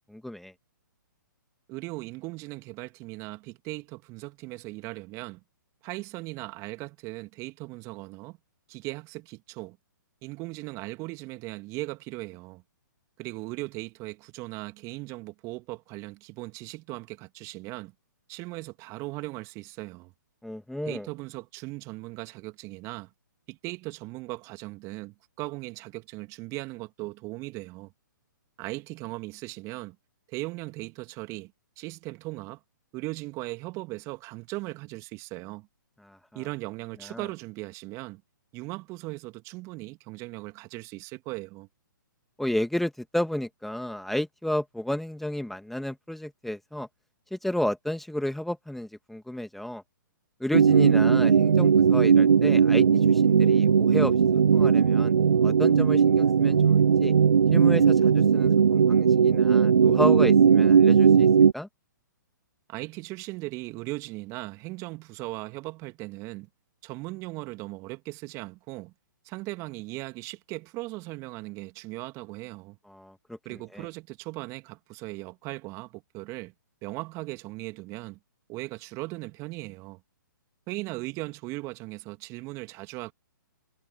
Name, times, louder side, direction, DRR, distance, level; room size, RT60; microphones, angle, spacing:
voice 1, 0.1-0.5 20.4-21.1 36.0-36.4 37.1-37.3 42.4-46.9 47.3-49.8 50.4-55.1 55.4-57.1 57.5-61.3 61.5-61.7 72.9-73.4 73.7-73.9, left 1 dB, ahead, 2.0 m, -32 dB
voice 2, 1.7-5.4 5.8-8.4 8.7-9.8 10.2-12.6 13.2-17.9 18.3-20.1 20.8-23.1 23.5-27.9 28.6-30.0 30.3-32.6 32.9-35.7 36.3-38.2 38.5-41.7 62.7-66.5 66.8-68.9 69.2-72.8 73.4-76.5 76.8-78.2 78.5-80.0 80.7-83.1, right 22 dB, 30° right, 2.4 m, -38 dB
sound 1, 50.5-61.5, right 6 dB, 75° right, 0.4 m, -19 dB
figure-of-eight pair, 125°, 11 cm